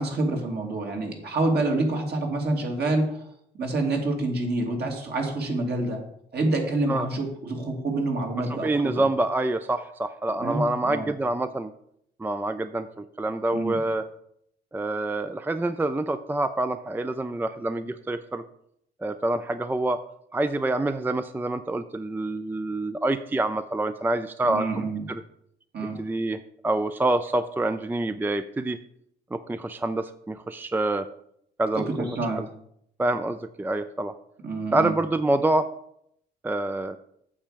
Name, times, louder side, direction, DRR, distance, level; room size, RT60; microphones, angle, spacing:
voice 1, 0.0-3.2 3.6-6.0 6.3-9.1 10.4-11.1 13.5-13.8 24.4-25.0 25.7-26.0 31.7-32.5 34.4-34.9, right 2 dB, 55° right, 1 dB, 2.8 m, -27 dB
voice 2, 8.4-11.7 12.2-14.1 14.7-18.4 19.0-20.0 20.3-25.2 26.0-28.8 29.3-31.1 31.6-32.1 32.4-32.5 33.0-34.1 34.7-35.7 36.4-37.0, right 2 dB, 10° right, 11 dB, 0.4 m, -27 dB
8.8 x 7.5 x 5.1 m, 0.72 s
cardioid pair, 90°, 20 cm